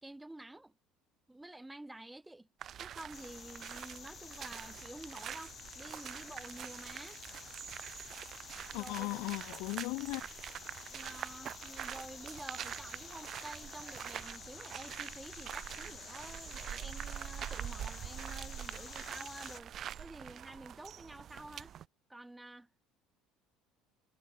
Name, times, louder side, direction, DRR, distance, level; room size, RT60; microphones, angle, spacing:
voice 1, 0.0-0.7 1.3-2.5 2.8-7.2 8.7-9.2 10.9-21.7 22.1-22.7, right 1 dB, 5° right, 2.3 m, -50 dB
sound 1, 2.6-21.9, right 10 dB, 40° right, 0.5 m, -45 dB
sound 2, 3.1-19.6, left 8 dB, 35° left, 1.3 m, -51 dB
voice 2, 8.7-10.2, left 27 dB, 80° left, 0.5 m, -37 dB
cardioid pair, 135°, 0 cm